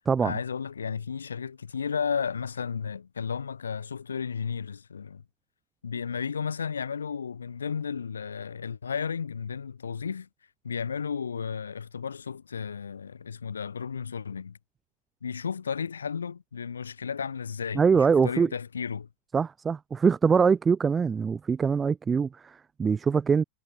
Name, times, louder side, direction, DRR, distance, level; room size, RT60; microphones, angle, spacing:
voice 1, 0.2-5.2 5.8-10.3 10.6-14.6 15.2-19.1, left 6 dB, 70° left, 3.3 m, -33 dB
voice 2, 17.7-18.5 19.3-23.4, right 6 dB, 15° right, 0.6 m, -23 dB
figure-of-eight pair, 90°, 0 cm